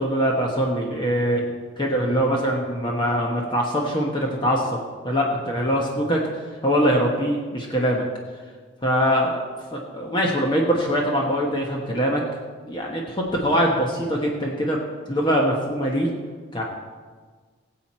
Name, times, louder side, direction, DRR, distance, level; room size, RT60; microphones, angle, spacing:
voice 1, 0.0-1.4 1.8-4.8 5.0-6.2 6.6-8.1 8.8-9.4 9.7-12.2 12.7-14.8 15.1-16.1 16.5-16.6, equal, 25° left, -1 dB, 1.1 m, -23 dB
18.0 x 7.8 x 4.3 m, 1.5 s
head